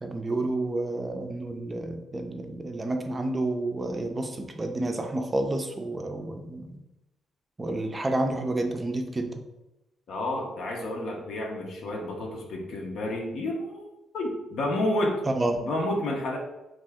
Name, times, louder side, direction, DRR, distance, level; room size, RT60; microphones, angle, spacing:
voice 1, 0.0-6.8 7.6-9.3 15.3-15.6, right 2 dB, 20° right, 5 dB, 0.4 m, -30 dB
voice 2, 10.1-13.8 14.1-15.2 15.6-16.4, left 1 dB, 70° left, 0 dB, 0.6 m, -30 dB
2.6 x 2.4 x 3.4 m, 0.98 s
cardioid pair, 110°, 0 cm